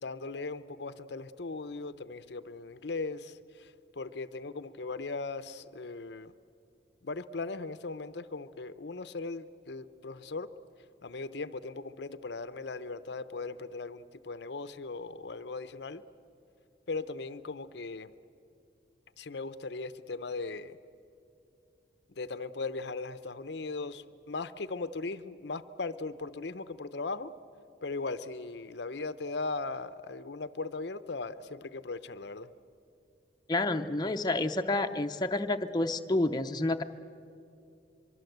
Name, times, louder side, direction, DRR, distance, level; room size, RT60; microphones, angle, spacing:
voice 1, 0.0-6.3 7.0-10.5 11.0-16.0 16.9-18.1 19.2-20.8 22.1-27.3 27.8-32.5, left 3 dB, 60° left, 13 dB, 0.7 m, -38 dB
voice 2, 33.5-36.8, left 2 dB, 20° left, 5 dB, 0.6 m, -29 dB
24.0 x 23.5 x 8.0 m, 2.5 s
head